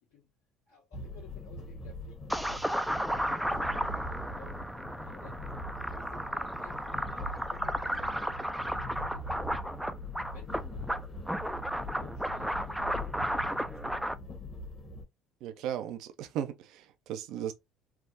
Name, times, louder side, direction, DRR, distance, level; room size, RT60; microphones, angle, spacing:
voice 1, 0.7-2.6 3.3-4.6 5.0-5.5 5.8-9.9 10.3-11.6 12.0-13.2 13.4-14.2 15.5-15.6, left 5 dB, 75° left, 1.4 m, -57 dB
sound 1, 0.9-15.0, left 1 dB, 35° left, 1.1 m, -42 dB
sound 2, 2.3-14.1, equal, 5° right, 0.3 m, -34 dB
voice 2, 15.4-17.5, right 10 dB, 65° right, 0.4 m, -36 dB
3.4 x 2.0 x 2.5 m
hypercardioid pair, 65°, 0 cm